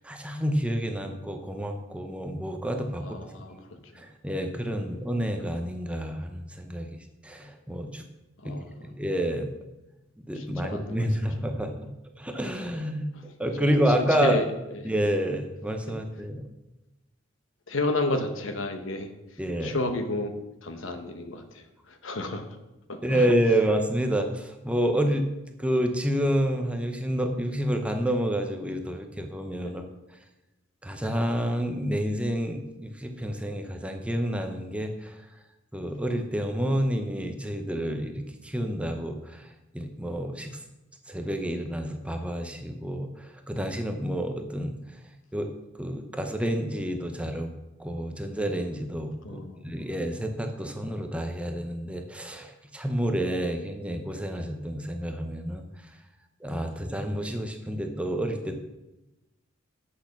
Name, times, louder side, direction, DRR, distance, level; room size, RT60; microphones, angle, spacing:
voice 1, 0.0-3.2 3.5-3.6 4.0-7.0 7.2-8.0 8.4-8.6 8.9-9.5 10.2-11.9 12.2-13.1 13.4-14.4 14.8-16.5 19.4-19.8 23.0-25.3 25.6-29.8 30.8-35.1 35.7-39.5 39.7-40.6 41.1-44.8 45.3-45.5 45.8-47.5 47.8-55.6 56.4-58.5, equal, 5° right, 5 dB, 0.7 m, -29 dB
voice 2, 3.0-3.6 8.4-8.9 10.4-11.1 13.6-14.5 15.9-16.0 17.7-19.1 19.6-20.3 20.6-21.6 22.0-22.4 22.9-23.3 29.6-29.7 49.2-49.7, left 2 dB, 70° left, 7 dB, 1.0 m, -31 dB
8.1 x 6.5 x 5.8 m, 0.99 s
head